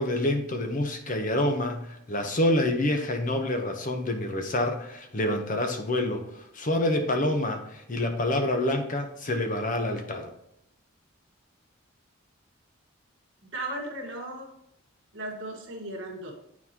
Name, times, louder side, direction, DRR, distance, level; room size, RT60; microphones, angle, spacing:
voice 1, 0.0-10.3, left 1 dB, 35° left, 5 dB, 0.8 m, -27 dB
voice 2, 13.4-14.5 15.1-16.3, right 1 dB, 60° right, -1 dB, 1.5 m, -36 dB
9.5 x 4.1 x 2.8 m, 0.77 s
head